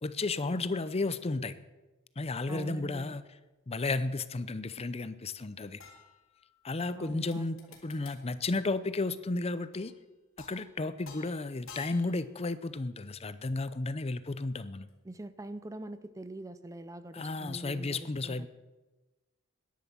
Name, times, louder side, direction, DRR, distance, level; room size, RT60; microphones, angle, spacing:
voice 1, 0.0-1.6 2.2-3.2 3.7-5.8 6.6-9.9 10.4-14.9 17.1-18.5, left 3 dB, 30° left, 14 dB, 0.6 m, -33 dB
voice 2, 2.5-3.2 6.9-7.5 15.0-18.5, right 1 dB, 15° right, 13 dB, 0.5 m, -43 dB
sound 1, 5.8-6.7 7.3-8.3 9.7-10.1 10.4-10.7 11.0-12.3 14.9-15.0, left 5 dB, 70° left, 3.0 m, -52 dB
12.0 x 10.5 x 7.4 m, 1.1 s
head